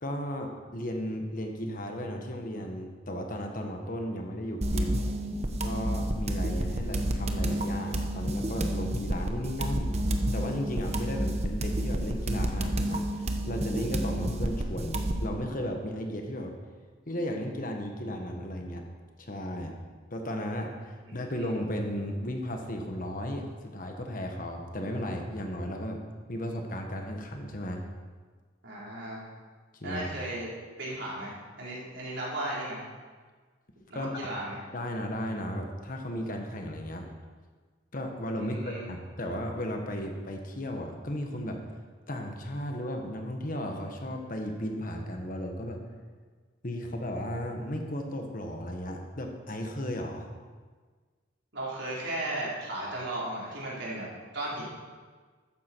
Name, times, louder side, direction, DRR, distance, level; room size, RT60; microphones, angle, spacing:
voice 1, 0.0-4.9 5.6-10.0 10.3-16.5 17.1-18.8 19.2-19.7 20.1-26.0 26.3-27.8 29.8-30.1 33.9-34.1 34.7-37.1 37.9-41.6 42.1-45.8 46.6-50.3, equal, 45° left, 3 dB, 1.4 m, -35 dB
sound 1, 4.6-15.3, right 1 dB, 35° right, 0.9 m, -30 dB
voice 2, 28.6-29.2 29.8-30.5 30.8-32.8 33.9-34.6 38.3-38.9 51.5-54.1 54.3-54.6, right 1 dB, 70° right, -6 dB, 4.5 m, -35 dB
13.5 x 9.7 x 4.7 m, 1.5 s
head